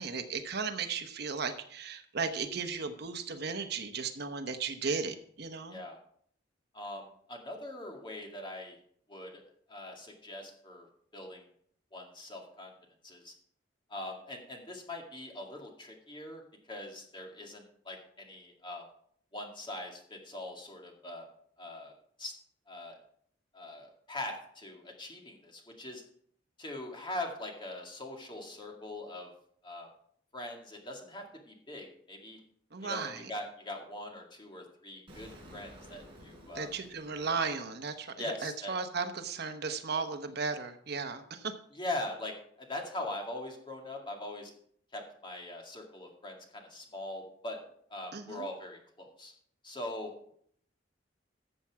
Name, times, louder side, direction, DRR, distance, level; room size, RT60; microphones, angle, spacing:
voice 1, 0.0-5.8 32.7-33.3 36.5-41.5 48.1-48.5, right 5 dB, 60° right, 7 dB, 1.0 m, -35 dB
voice 2, 6.7-8.8 9.1-9.4 9.7-10.9 11.1-11.4 11.9-12.7 13.0-13.3 13.9-16.4 16.7-18.9 19.3-21.2 21.6-21.9 22.2-22.3 22.7-23.0 23.5-26.0 26.6-29.3 29.6-29.9 30.3-32.4 32.8-36.7 38.2-38.8 41.7-44.5 44.9-47.6 47.9-49.3 49.6-50.1, left 1 dB, 25° left, 1 dB, 2.2 m, -42 dB
Explosion, 35.1-38.0, equal, 30° right, 3.9 m, -53 dB
13.5 x 7.4 x 4.8 m, 0.64 s
head